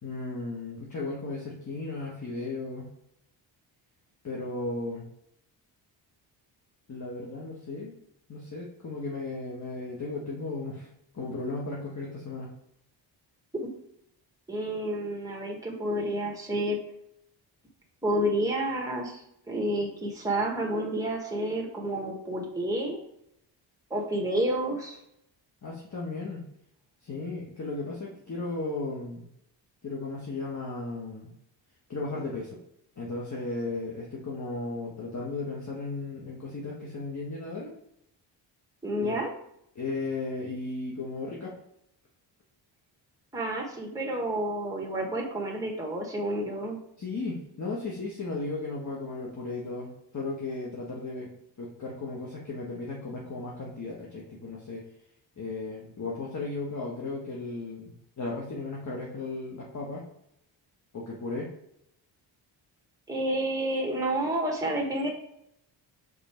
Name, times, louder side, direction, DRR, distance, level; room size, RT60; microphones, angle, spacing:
voice 1, 0.0-2.9 4.2-5.1 6.9-7.9 8.3-10.9 11.1-12.5 25.6-26.4 27.0-29.2 29.8-31.3 31.9-32.6 33.0-37.7 39.0-39.2 39.7-41.5 47.0-51.3 51.6-54.9 55.4-60.0 60.9-61.5, left 3 dB, 35° left, -4 dB, 1.4 m, -35 dB
voice 2, 14.5-16.8 18.0-19.2 19.5-23.0 23.9-25.0 38.8-39.3 43.3-46.8 63.1-65.1, right 1 dB, 5° right, -1 dB, 1.4 m, -29 dB
5.3 x 4.3 x 4.5 m, 0.76 s
cardioid pair, 80°, 47 cm